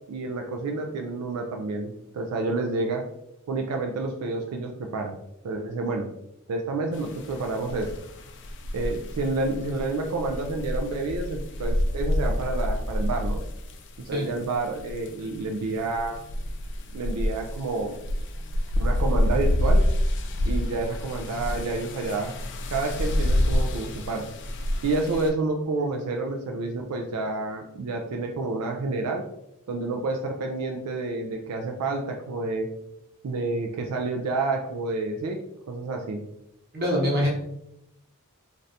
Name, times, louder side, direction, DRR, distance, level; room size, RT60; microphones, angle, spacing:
voice 1, 0.1-3.0 3.5-5.2 5.4-6.1 6.5-7.9 8.7-13.4 14.1-16.2 16.9-17.9 18.8-19.8 20.5-22.3 22.7-24.2 24.8-29.2 29.7-32.7 33.2-35.4 35.7-36.2, right 3 dB, 85° right, 2 dB, 0.4 m, -29 dB
sound 1, 6.9-25.3, left 1 dB, 55° left, 0.4 m, -28 dB
voice 2, 36.7-37.3, equal, 45° right, -3 dB, 1.0 m, -23 dB
3.2 x 2.5 x 2.6 m, 0.81 s
head